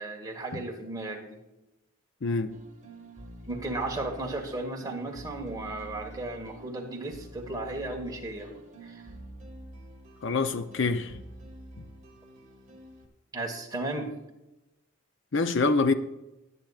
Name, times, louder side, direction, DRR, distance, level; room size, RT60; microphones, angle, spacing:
voice 1, 0.0-1.4 3.5-9.0 13.3-14.1, right 2 dB, 15° right, 1.4 m, -35 dB
voice 2, 2.2-2.5 10.2-11.2 11.8-11.9 15.3-15.9, left 3 dB, 55° left, 0.7 m, -25 dB
sound 1, 2.5-13.1, right 1 dB, 35° right, 1.8 m, -47 dB
19.5 x 8.2 x 2.4 m
head